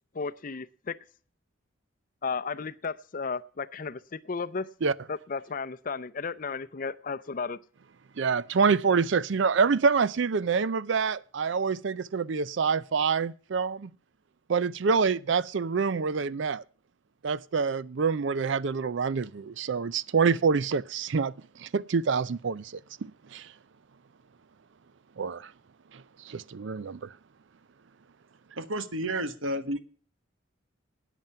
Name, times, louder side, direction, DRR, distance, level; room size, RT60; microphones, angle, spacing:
voice 1, 0.1-1.0 2.2-4.7 5.1-7.6, left 5 dB, 45° left, 0.6 m, -34 dB
voice 2, 8.2-13.9 14.5-16.6 17.2-22.7 23.0-23.5 25.2-25.5 25.9-27.1, right 5 dB, 65° right, 0.5 m, -26 dB
voice 3, 28.6-29.8, right 1 dB, 85° right, 1.3 m, -31 dB
13.0 x 9.3 x 5.6 m
head